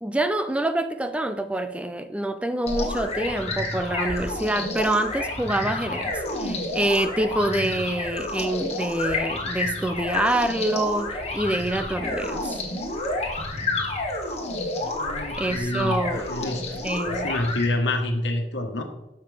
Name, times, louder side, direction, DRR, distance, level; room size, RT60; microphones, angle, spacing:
voice 1, 0.0-12.6 15.4-16.3 16.8-17.3, right 1 dB, 5° right, 9 dB, 0.4 m, -26 dB
sound 1, 2.7-17.7, left 2 dB, 35° left, 1.6 m, -30 dB
voice 2, 14.8-18.8, left 1 dB, 80° left, 4 dB, 1.4 m, -28 dB
10.5 x 6.6 x 3.4 m, 0.96 s
head